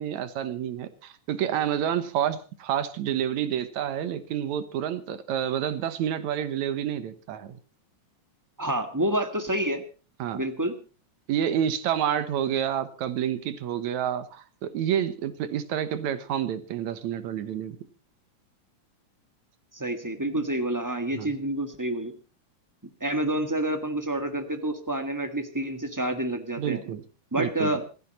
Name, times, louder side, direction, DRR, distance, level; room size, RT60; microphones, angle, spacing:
voice 1, 0.0-7.6 10.2-10.4 11.3-17.8 21.1-21.3 26.6-27.0 27.3-27.7, right 9 dB, 75° right, 12 dB, 2.4 m, -29 dB
voice 2, 8.6-9.8 10.3-10.7 19.7-22.1 23.0-26.8 27.3-27.8, right 1 dB, 10° right, 8 dB, 0.9 m, -28 dB
27.0 x 10.0 x 4.2 m, 0.36 s
omnidirectional pair, 3.3 m